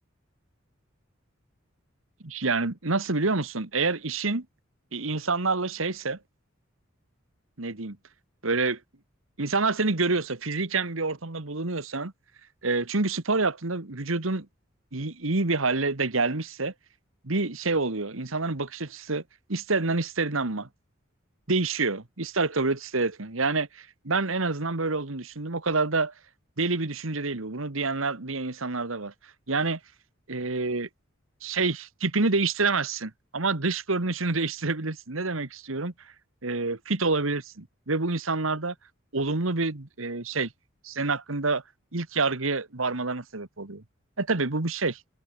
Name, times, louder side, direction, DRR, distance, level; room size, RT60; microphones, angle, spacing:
voice 1, 2.2-4.5 4.9-6.2 7.6-8.0 8.4-8.8 9.4-12.1 12.6-14.5 14.9-16.7 17.2-19.2 19.5-20.7 21.5-26.1 26.6-29.1 29.5-29.8 30.3-30.9 31.4-35.9 36.4-38.8 39.1-40.5 40.8-41.6 41.9-43.8 44.2-45.0, right 3 dB, 75° right, 1.8 m, -27 dB
head